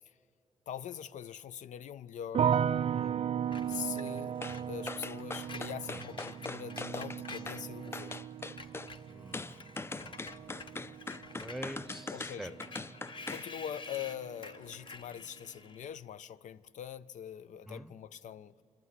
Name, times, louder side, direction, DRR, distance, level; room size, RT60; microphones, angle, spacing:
voice 1, 0.7-2.6 3.7-4.4 4.7-8.2 12.1-12.6 13.3-18.5, left 9 dB, 85° left, 0.4 m, -43 dB
sound 1, 2.3-13.4 13.7-14.4, right 8 dB, 55° right, 0.4 m, -36 dB
voice 2, 2.9-3.2 5.9-6.0 9.1-10.1 11.4-12.5 17.7-17.9, equal, ahead, 0.8 m, -45 dB
Screech, 3.5-8.2 8.5-15.9, left 4 dB, 45° left, 0.9 m, -50 dB
sound 2, 4.4-4.6 4.9-7.6 7.9-8.9 9.3-13.5 13.8-14.0, left 3 dB, 20° left, 0.4 m, -41 dB
26.5 x 12.5 x 9.4 m
wide cardioid pair, 125°, 12 cm